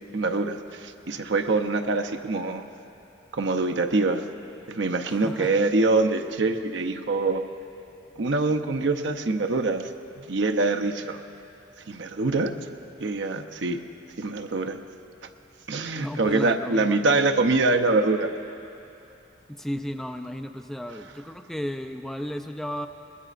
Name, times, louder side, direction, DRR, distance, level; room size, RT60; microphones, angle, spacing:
voice 1, 0.1-2.6 3.3-4.2 4.7-7.4 8.2-9.9 10.2-11.2 11.9-12.5 13.0-13.8 14.2-14.8 15.7-18.3, right 3 dB, 75° right, 5 dB, 0.7 m, -24 dB
voice 2, 5.1-5.6 15.9-17.2 19.5-22.9, equal, ahead, 6 dB, 0.4 m, -34 dB
22.0 x 20.0 x 2.5 m, 2.8 s
head